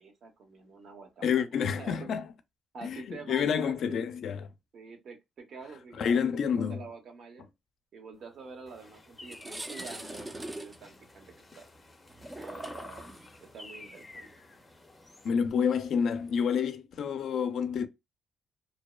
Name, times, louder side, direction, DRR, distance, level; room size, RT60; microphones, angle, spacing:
voice 1, 0.0-2.1 2.7-4.1 4.7-6.1 6.3-7.5 7.9-11.7 12.3-13.1 13.4-14.3, right 4 dB, 60° right, 0.8 m, -47 dB
voice 2, 1.2-2.3 2.8-4.5 6.0-6.9 15.2-17.9, left 7 dB, 65° left, 0.4 m, -28 dB
sound 1, 8.6-8.8 9.1-16.4, right 1 dB, 15° right, 0.4 m, -44 dB
sound 2, 8.7-15.3, left 2 dB, 25° left, 0.6 m, -51 dB
2.7 x 2.0 x 2.2 m
cardioid pair, 90°, 0 cm